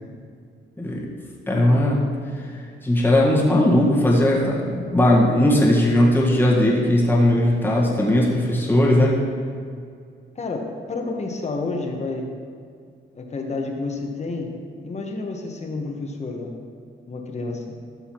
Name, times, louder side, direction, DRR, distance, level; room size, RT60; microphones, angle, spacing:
voice 1, 0.8-1.1 1.5-2.1 2.3-2.4 2.8-9.2, left 1 dB, 10° left, -4 dB, 1.6 m, -18 dB
voice 2, 10.3-12.3 13.1-14.5 14.8-16.5 17.1-17.6, left 3 dB, 35° left, 2 dB, 1.3 m, -29 dB
13.0 x 6.6 x 3.1 m, 2.3 s
cardioid pair, 90°, 20 cm